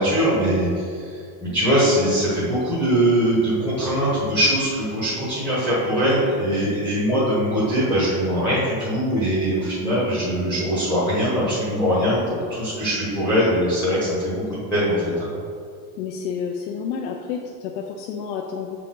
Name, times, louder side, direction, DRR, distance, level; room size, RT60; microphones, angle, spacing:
voice 1, 0.0-15.3, equal, 5° right, -10 dB, 1.3 m, -22 dB
voice 2, 16.0-18.8, left 6 dB, 90° left, 1 dB, 0.7 m, -30 dB
6.7 x 4.8 x 3.8 m, 2.3 s
supercardioid pair, 160°, 49 cm